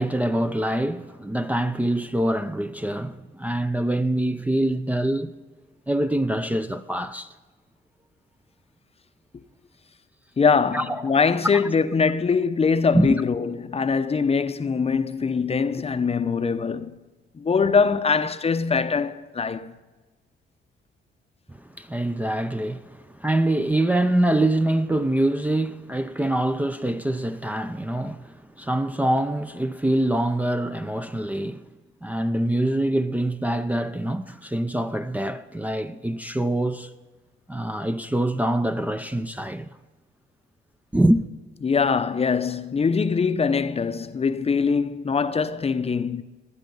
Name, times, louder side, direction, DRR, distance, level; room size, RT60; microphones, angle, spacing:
voice 1, 0.0-5.4 5.9-7.3 10.7-11.0 11.5-11.6 12.9-13.2 21.5-31.6 32.0-36.9 37.5-39.7 40.9-41.2, right 1 dB, 10° right, 0.6 m, -24 dB
voice 2, 10.4-16.9 17.3-19.7 41.6-46.2, left 5 dB, 30° left, 0.7 m, -22 dB
18.0 x 11.5 x 5.4 m
cardioid pair, 90°, 20 cm